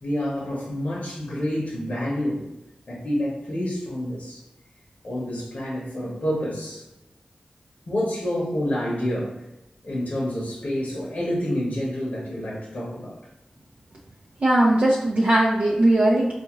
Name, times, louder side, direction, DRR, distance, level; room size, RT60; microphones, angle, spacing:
voice 1, 0.0-2.5 2.9-4.4 5.0-6.8 7.9-9.3 9.8-13.2, equal, 65° left, -5 dB, 0.9 m, -28 dB
voice 2, 14.4-16.3, right 1 dB, 55° right, -4 dB, 0.6 m, -19 dB
3.8 x 2.5 x 3.0 m, 0.94 s
cardioid pair, 40°, 3 cm